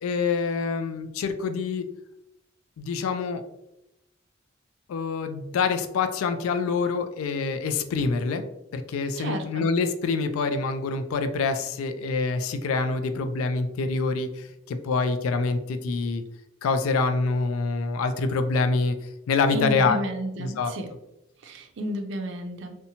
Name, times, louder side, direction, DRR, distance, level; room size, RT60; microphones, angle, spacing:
voice 1, 0.0-1.9 2.8-3.4 4.9-8.4 8.7-16.2 16.6-19.0 19.3-20.0 20.4-20.7, left 4 dB, 90° left, 8 dB, 0.3 m, -26 dB
voice 2, 9.2-9.7 19.5-20.9 21.4-22.8, equal, 60° right, 5 dB, 0.4 m, -32 dB
2.7 x 2.2 x 2.7 m, 0.87 s
head